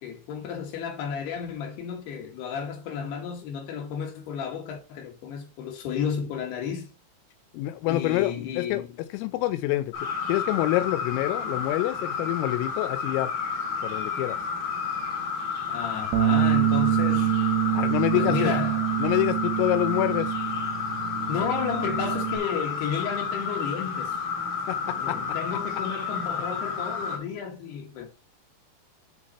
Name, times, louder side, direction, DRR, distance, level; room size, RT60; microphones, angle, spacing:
voice 1, 0.0-6.9 7.9-8.9 15.7-17.3 18.1-18.9 21.3-24.2 25.0-28.1, left 7 dB, 65° left, 3.0 m, -32 dB
voice 2, 7.5-8.8 9.1-9.9 10.3-13.3 13.8-14.4 17.7-18.5 19.0-20.3 24.7-25.2, left 16 dB, 85° left, 3.3 m, -26 dB
sound 1, 9.9-27.2, left 5 dB, 50° left, 5.1 m, -31 dB
Bass guitar, 16.1-22.4, right 11 dB, 90° right, 2.1 m, -26 dB
10.5 x 4.0 x 4.2 m
omnidirectional pair, 5.9 m